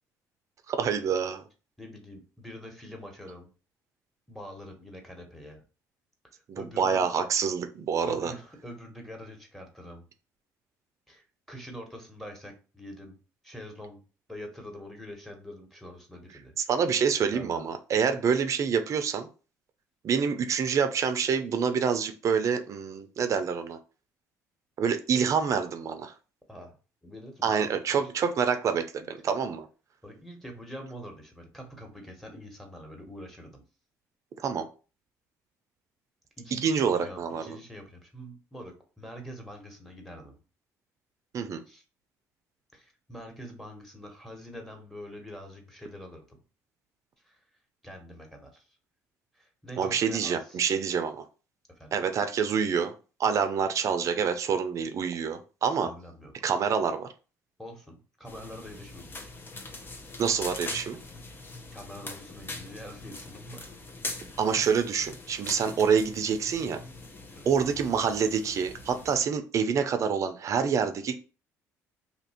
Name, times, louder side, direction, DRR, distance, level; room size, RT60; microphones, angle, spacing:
voice 1, 0.7-1.4 6.5-8.3 16.6-19.3 20.0-23.8 24.8-26.1 27.4-29.7 34.4-34.7 36.5-37.6 41.3-41.6 49.8-51.2 51.9-52.9 53.2-55.9 56.4-57.1 60.2-61.0 64.4-66.8 67.5-71.2, right 6 dB, 55° right, 0.6 m, -27 dB
voice 2, 1.8-3.5 4.3-5.6 6.6-7.1 8.0-10.0 11.1-13.2 13.4-14.0 14.3-16.5 17.2-17.7 26.5-26.7 27.0-28.1 30.0-33.6 36.4-40.4 41.7-41.8 42.7-46.4 47.2-47.3 47.8-48.6 49.3-50.6 51.8-52.0 55.8-56.3 57.6-59.3 59.5-59.7 61.7-63.7 67.3-67.5, equal, 5° left, 1.4 m, -45 dB
sound 1, 58.3-69.2, left 2 dB, 35° left, 0.7 m, -42 dB
2.8 x 2.6 x 4.2 m
supercardioid pair, 75°, 6 cm